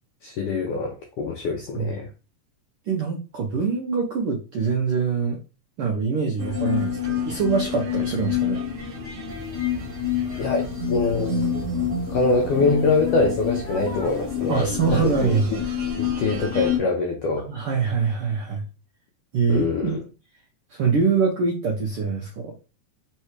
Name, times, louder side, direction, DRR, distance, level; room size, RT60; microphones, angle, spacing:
voice 1, 0.2-2.1 10.4-11.8 12.1-15.6 16.0-17.5 19.5-20.0, left 3 dB, 80° left, 2 dB, 1.3 m, -24 dB
voice 2, 2.9-5.4 5.8-8.6 14.5-15.5 17.5-18.6 19.3-20.0 20.7-22.5, right 5 dB, 80° right, -1 dB, 1.3 m, -24 dB
sound 1, 6.4-16.8, left 7 dB, 50° right, 0.8 m, -28 dB
sound 2, 9.3-15.3, left 1 dB, 55° left, 1.1 m, -41 dB
4.6 x 3.2 x 3.1 m, 0.33 s
omnidirectional pair, 3.4 m